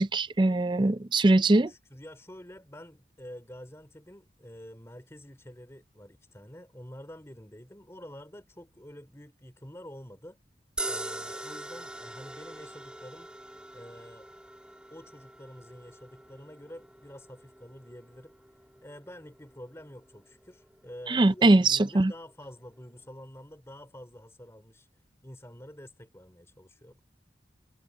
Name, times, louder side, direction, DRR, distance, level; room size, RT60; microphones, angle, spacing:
voice 1, 0.0-1.7 21.1-22.1, right 2 dB, 25° right, 0.5 m, -22 dB
voice 2, 1.5-10.4 10.9-13.3 13.7-14.3 14.9-27.0, equal, 15° left, 2.9 m, -48 dB
sound 1, 10.8-23.1, right 2 dB, 5° right, 2.5 m, -44 dB
head